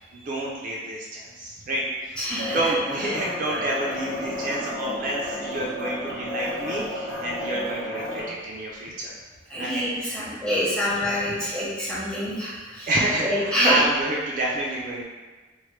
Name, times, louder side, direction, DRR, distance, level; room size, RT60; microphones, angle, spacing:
voice 1, 0.1-2.2 2.5-9.1 9.6-10.5 10.8-11.3 12.8-15.0, right 1 dB, 45° right, -4 dB, 0.3 m, -29 dB
voice 2, 2.2-2.6 9.5-12.9 13.2-13.8, equal, 5° left, -9 dB, 0.8 m, -26 dB
sound 1, 2.3-8.2, left 1 dB, 80° left, 0.8 m, -32 dB
3.1 x 2.1 x 3.0 m, 1.3 s
head